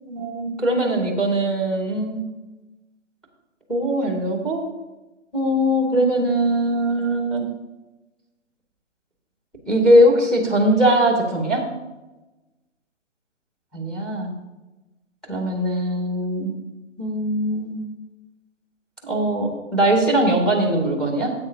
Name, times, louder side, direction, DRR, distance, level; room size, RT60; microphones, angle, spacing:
voice 1, 0.0-2.2 3.7-4.6 5.3-7.5 9.7-11.6 13.7-14.3 15.3-16.6 17.0-17.9 19.0-21.3, right 1 dB, ahead, 1 dB, 1.8 m, -21 dB
15.5 x 8.5 x 2.8 m, 1.1 s
figure-of-eight pair, 140°, 37 cm